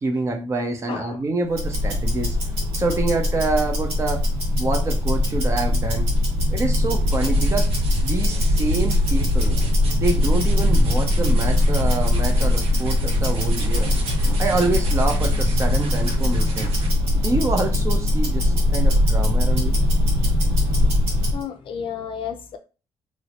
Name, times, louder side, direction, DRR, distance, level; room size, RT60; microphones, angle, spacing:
voice 1, 0.0-2.4 2.7-4.2 4.6-6.1 6.5-7.7 8.0-9.6 10.0-13.9 14.4-16.7 17.1-19.7, right 3 dB, 25° right, 0.6 m, -26 dB
voice 2, 0.9-1.2 21.3-22.6, left 7 dB, 50° left, 0.5 m, -32 dB
Tick-tock, 1.5-21.4, left 1 dB, 90° right, 1.8 m, -21 dB
sound 1, 6.7-17.1, right 1 dB, 65° right, 0.8 m, -35 dB
3.1 x 2.7 x 2.9 m
cardioid pair, 145°, 11 cm